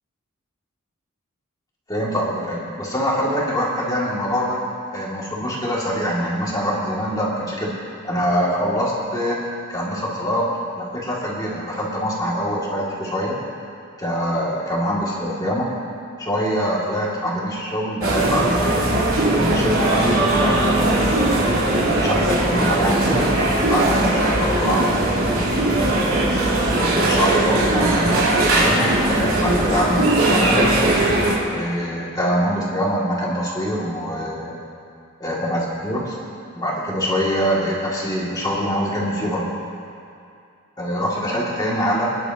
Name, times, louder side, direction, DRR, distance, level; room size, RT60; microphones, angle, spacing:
voice 1, 1.9-4.6 4.9-7.7 8.0-9.4 9.7-13.4 14.0-15.7 16.2-18.8 19.3-21.5 22.0-23.3 23.7-25.9 26.7-30.9 31.5-34.6 35.2-36.2 36.5-39.5 40.8-42.2, equal, 15° left, -6 dB, 2.5 m, -24 dB
sound 1, 18.0-31.4, right 1 dB, 80° right, 3.1 m, -19 dB
28.0 x 10.5 x 3.0 m, 2.5 s
head